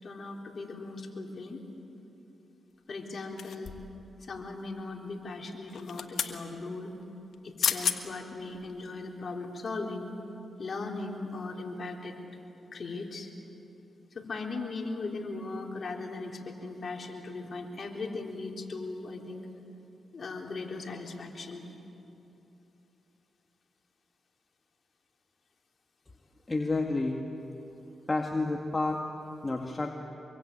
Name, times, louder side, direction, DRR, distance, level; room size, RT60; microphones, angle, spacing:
voice 1, 0.0-1.6 2.9-3.7 4.2-7.0 7.4-10.1 10.6-12.2 12.7-13.3 14.1-19.5 20.1-21.7, left 3 dB, 55° left, 1 dB, 3.6 m, -38 dB
sound 1, 3.4-4.0 5.7-6.4 7.3-7.4 7.6-8.0 8.5-8.7, left 7 dB, 80° left, 1.6 m, -31 dB
voice 2, 26.5-27.2 28.1-29.0 29.4-29.9, left 2 dB, 30° left, 2 dB, 2.0 m, -29 dB
25.5 x 23.5 x 9.0 m, 3.0 s
cardioid pair, 60°, 0 cm